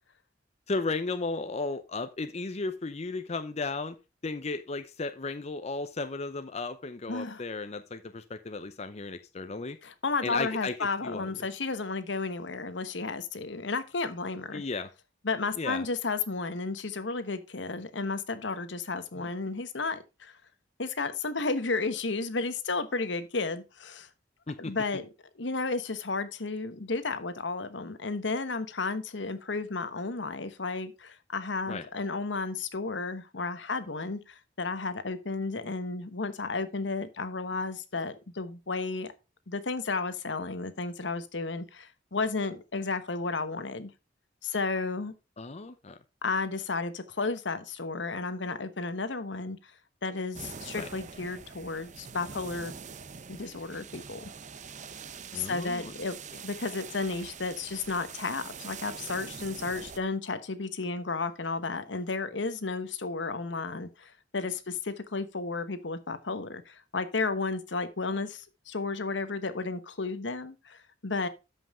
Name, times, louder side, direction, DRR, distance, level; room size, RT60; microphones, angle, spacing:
voice 1, 0.7-4.0 4.2-9.8 10.2-11.4 14.5-14.9 15.6-15.9 19.1-19.3 24.5-24.7 31.7-31.8 45.4-46.0 50.7-50.9 55.3-55.9 56.3-56.4, left 3 dB, 35° left, 0.7 m, -35 dB
voice 2, 7.1-7.4 9.8-14.6 15.2-20.3 20.8-24.1 24.6-25.1 25.4-39.1 39.5-43.9 44.4-45.1 46.2-49.7 50.0-52.7 53.3-54.3 55.3-56.2 56.4-71.3, left 3 dB, 75° left, 1.1 m, -33 dB
sound 1, 50.3-60.0, right 6 dB, 40° right, 0.7 m, -44 dB
13.0 x 5.5 x 3.6 m
head